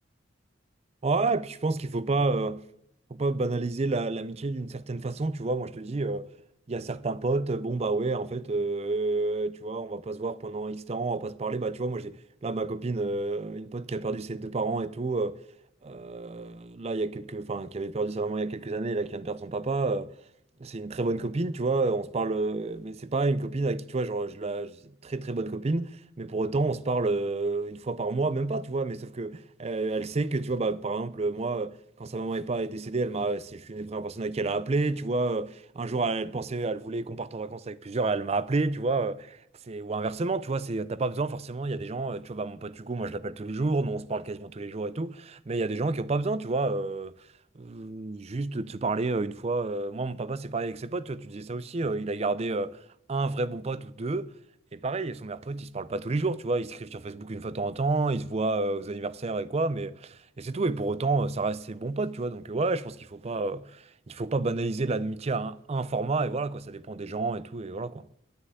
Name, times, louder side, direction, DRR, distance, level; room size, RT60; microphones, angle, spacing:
voice 1, 1.0-2.6 3.1-6.3 6.7-15.4 15.8-20.1 20.6-39.4 39.7-47.1 47.6-52.8 53.1-54.3 54.7-68.1, right 3 dB, 35° right, 0.5 m, -30 dB
11.5 x 6.6 x 9.2 m
head